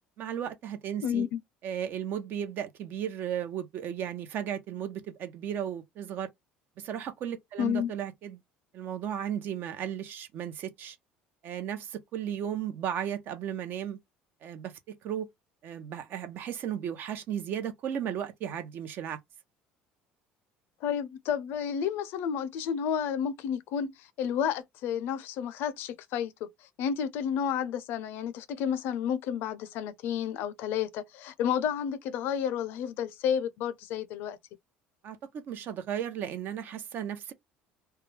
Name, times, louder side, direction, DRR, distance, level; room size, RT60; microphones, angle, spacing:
voice 1, 0.2-1.3 1.6-6.3 6.8-8.4 8.7-11.0 11.4-14.0 14.4-15.3 15.6-19.2 35.0-37.3, right 9 dB, 60° right, 0.7 m, -35 dB
voice 2, 1.0-1.4 7.6-7.9 20.8-26.5 26.8-34.4, left 8 dB, 70° left, 0.5 m, -31 dB
2.3 x 2.2 x 3.1 m
supercardioid pair, 90°, 4 cm